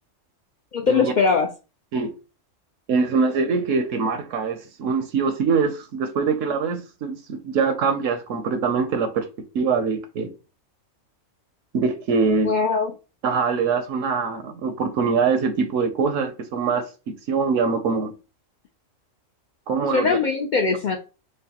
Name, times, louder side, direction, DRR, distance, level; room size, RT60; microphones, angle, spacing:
voice 1, 0.7-1.5 12.4-12.9 19.9-21.0, left 5 dB, 85° left, 0.4 m, -21 dB
voice 2, 2.9-9.3 9.5-10.3 11.7-12.5 13.2-16.8 17.3-18.1 19.7-20.2, right 5 dB, 75° right, 0.9 m, -23 dB
6.3 x 2.2 x 2.8 m
omnidirectional pair, 1.4 m